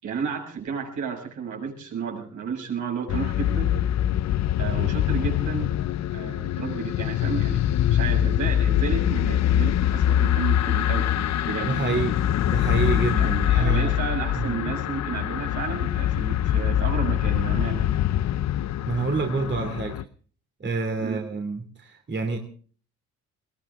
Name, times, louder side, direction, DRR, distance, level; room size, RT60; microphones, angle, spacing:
voice 1, 0.0-3.8 4.6-5.7 6.1-7.6 7.9-11.8 13.1-17.9 21.0-21.2, right 6 dB, 75° right, 0 dB, 7.3 m, -32 dB
sound 1, 3.1-20.0, left 11 dB, 65° left, 0.8 m, -24 dB
voice 2, 11.7-13.9 14.4-14.6 18.9-20.0 20.6-22.4, right 4 dB, 35° right, 4 dB, 2.9 m, -28 dB
21.5 x 18.0 x 3.7 m, 0.43 s
cardioid pair, 90°, 30 cm